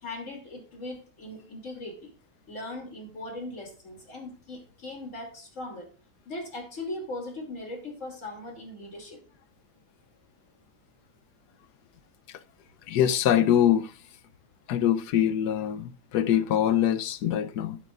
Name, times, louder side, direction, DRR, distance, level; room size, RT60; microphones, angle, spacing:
voice 1, 0.0-2.1 2.5-5.9 6.2-9.2, left 2 dB, 50° left, 3.2 m, -39 dB
voice 2, 12.9-13.9 14.7-17.8, left 10 dB, 80° left, 1.3 m, -24 dB
11.5 x 11.5 x 2.5 m
omnidirectional pair, 1.7 m